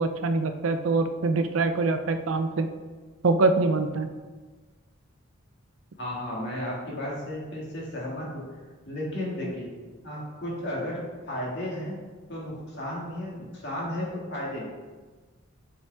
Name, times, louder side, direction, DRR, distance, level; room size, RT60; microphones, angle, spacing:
voice 1, 0.0-2.7 3.2-4.1, right 3 dB, 75° right, 8 dB, 0.5 m, -24 dB
voice 2, 6.0-8.4 8.9-9.7 10.0-12.0 12.3-14.7, left 1 dB, 60° left, -4 dB, 1.8 m, -33 dB
6.9 x 4.8 x 3.3 m, 1.3 s
head